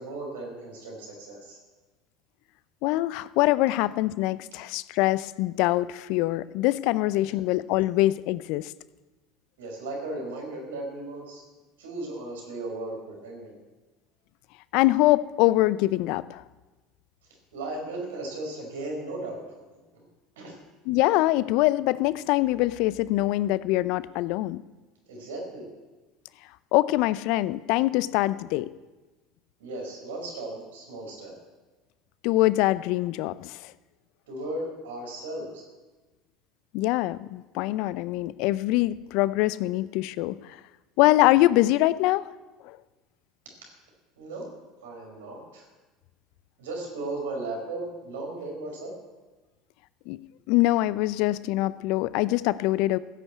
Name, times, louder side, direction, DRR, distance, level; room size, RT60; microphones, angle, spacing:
voice 1, 0.0-1.6 7.2-7.3 9.6-11.4 11.8-13.6 17.5-19.6 19.9-20.1 20.4-20.6 25.1-25.7 29.6-31.3 34.3-35.6 44.2-44.5 44.8-45.7 46.6-48.9, right 2 dB, 75° right, 0 dB, 5.2 m, -36 dB
voice 2, 2.8-8.7 14.7-16.4 20.9-24.6 26.7-28.7 32.2-33.7 36.7-40.6 41.0-42.3 42.6-42.8 50.1-50.2 50.5-53.0, left 17 dB, 65° left, 18 dB, 0.5 m, -24 dB
15.5 x 8.3 x 8.3 m, 1.2 s
hypercardioid pair, 75°, 0 cm